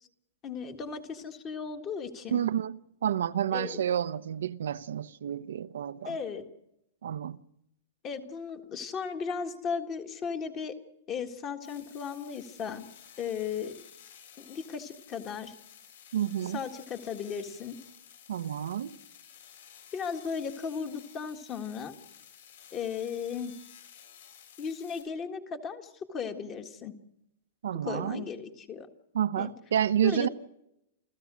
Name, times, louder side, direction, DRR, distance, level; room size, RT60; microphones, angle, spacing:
voice 1, 0.4-2.4 3.5-3.8 6.0-6.4 8.0-10.7 11.1-12.9 13.2-13.7 14.4-15.5 16.5-17.8 19.9-21.9 22.7-23.5 24.6-26.9 27.8-28.9 29.4-29.5 30.0-30.3, left 6 dB, 20° left, 1.7 m, -36 dB
voice 2, 2.3-6.2 7.0-7.4 16.1-16.6 18.3-19.0 27.6-28.2 29.1-30.3, right 10 dB, 80° right, 0.8 m, -30 dB
sound 1, 11.6-25.0, left 9 dB, 70° left, 7.2 m, -53 dB
29.0 x 15.0 x 6.2 m
supercardioid pair, 170°, 0 cm